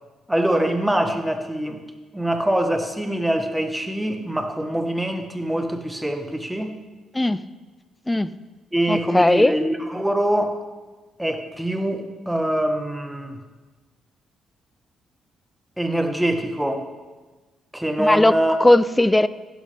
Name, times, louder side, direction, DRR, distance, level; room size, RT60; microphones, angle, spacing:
voice 1, 0.3-1.8 2.1-6.8 8.7-10.5 11.2-13.4 15.8-16.8 17.7-18.6, right 1 dB, 5° right, 6 dB, 1.3 m, -24 dB
voice 2, 7.1-7.5 8.1-8.3 8.9-9.6 18.0-18.3 18.6-19.3, left 1 dB, 10° left, 16 dB, 0.4 m, -17 dB
15.5 x 11.5 x 3.4 m, 1.3 s
cardioid pair, 90°, 0 cm